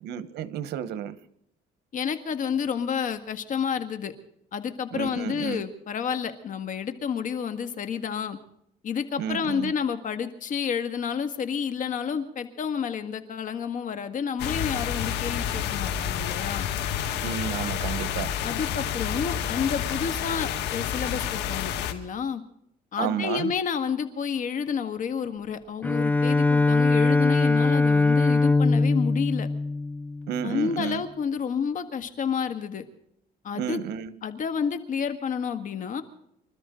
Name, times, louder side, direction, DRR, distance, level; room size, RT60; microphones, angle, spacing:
voice 1, 0.0-1.2 4.9-5.6 9.2-9.7 17.2-18.3 23.0-23.5 30.3-31.1 33.5-34.1, right 9 dB, 80° right, 14 dB, 1.2 m, -31 dB
voice 2, 1.9-4.1 4.5-8.4 8.8-16.7 18.4-22.4 22.9-29.5 30.4-32.8 33.4-33.8 34.2-36.0, left 7 dB, 50° left, 9 dB, 1.8 m, -30 dB
sound 1, 14.4-21.9, left 9 dB, 80° left, 1.8 m, -29 dB
Bowed string instrument, 25.8-30.5, left 3 dB, 10° left, 0.8 m, -22 dB
26.0 x 13.0 x 3.8 m, 0.72 s
cardioid pair, 110°, 17 cm